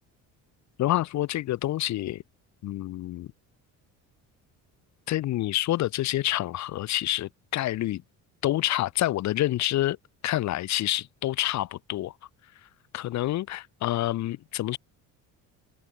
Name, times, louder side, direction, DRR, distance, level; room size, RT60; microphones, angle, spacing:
voice 1, 0.8-2.2 2.6-3.3 5.1-8.0 8.4-10.0 10.2-12.1 12.9-14.8, left 14 dB, 50° left, 0.9 m, -27 dB
open air
cardioid pair, 160°, 35 cm